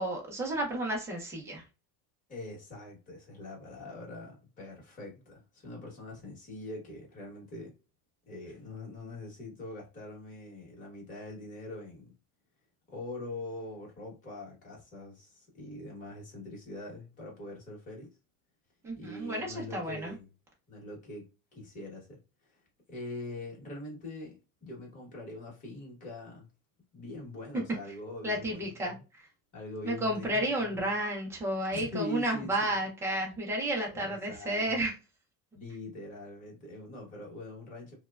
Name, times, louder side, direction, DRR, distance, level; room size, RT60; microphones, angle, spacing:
voice 1, 0.0-1.6 18.8-20.1 28.2-28.9 29.8-34.9, right 1 dB, 5° right, 0.3 m, -32 dB
voice 2, 2.3-7.7 8.3-12.1 12.9-18.1 19.0-20.3 20.7-22.2 22.5-22.6 22.9-26.5 26.9-29.0 29.5-30.8 31.7-32.7 33.9-34.8 35.5-38.0, left 1 dB, 20° left, 0.9 m, -43 dB
3.0 x 2.1 x 2.2 m
cardioid pair, 165°, 42 cm